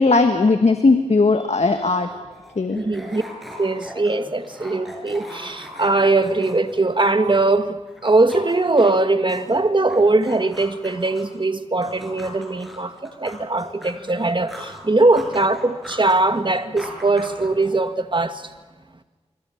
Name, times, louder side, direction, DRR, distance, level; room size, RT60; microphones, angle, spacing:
voice 1, 0.0-2.1 2.5-2.8, left 3 dB, 70° left, 1.5 m, -17 dB
sound 1, 1.8-7.6 7.9-11.4 11.8-14.8 15.1-17.9, equal, ahead, 7.5 m, -40 dB
voice 2, 2.8-3.2 3.6-18.5, right 2 dB, 45° right, 1.8 m, -20 dB
25.5 x 25.0 x 7.2 m
cardioid pair, 45°, 12 cm